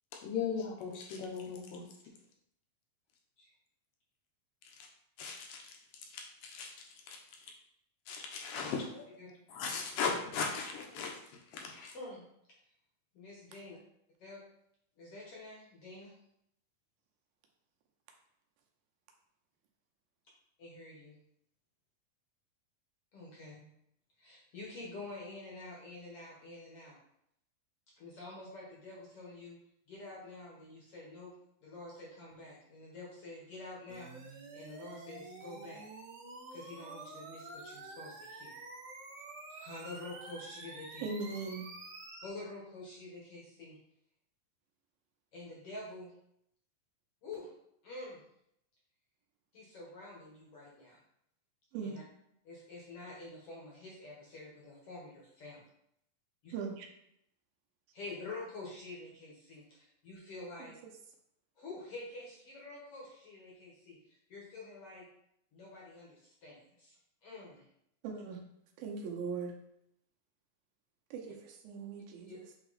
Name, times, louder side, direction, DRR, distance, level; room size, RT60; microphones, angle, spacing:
voice 1, 0.2-1.8 5.2-5.6 6.1-6.7 7.1-7.2 8.1-9.1 9.5-11.1 11.5-11.9, left 5 dB, 75° left, 0 dB, 2.5 m, -37 dB
voice 2, 11.9-12.3 13.1-13.8 14.2-14.4 15.0-16.1 20.6-21.2 23.1-23.7 24.2-27.0 27.9-29.6 29.9-31.3 31.6-35.9 36.5-38.6 39.5-41.1 42.2-43.8 45.3-46.1 47.2-47.5 47.8-48.2 49.5-51.0 51.8-52.0 52.4-55.6 56.4-56.5 57.9-59.8 60.0-60.8 61.6-65.1 65.5-67.7 72.3-72.4, left 2 dB, 55° left, -4 dB, 1.7 m, -48 dB
sound 1, 33.9-42.3, right 2 dB, 60° right, 2.3 m, -48 dB
voice 3, 41.0-41.7 51.7-52.0 56.5-56.9 68.0-68.4 68.8-69.6 71.1-72.4, right 5 dB, 90° right, 1 dB, 2.8 m, -39 dB
8.0 x 2.9 x 4.1 m, 0.75 s
omnidirectional pair, 4.1 m